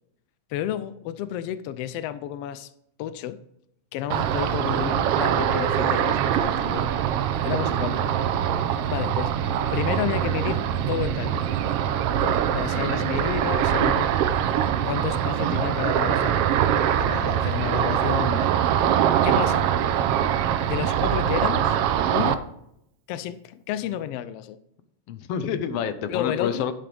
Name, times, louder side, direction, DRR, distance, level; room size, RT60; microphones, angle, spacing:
voice 1, 0.5-2.7 3.0-3.4 3.9-6.9 7.4-8.1 8.9-9.3 9.7-11.4 12.2-14.1 14.9-16.4 17.0-18.6 19.2-19.7 20.7-21.8 22.1-22.4 23.1-24.6 26.1-26.7, left 11 dB, 85° left, 13 dB, 1.3 m, -31 dB
Ocean, 4.1-22.4, right 9 dB, 80° right, 1.3 m, -23 dB
voice 2, 12.7-13.1 13.6-13.9 25.1-26.7, left 8 dB, 70° left, 11 dB, 1.6 m, -29 dB
11.0 x 7.7 x 3.4 m, 0.75 s
omnidirectional pair, 3.3 m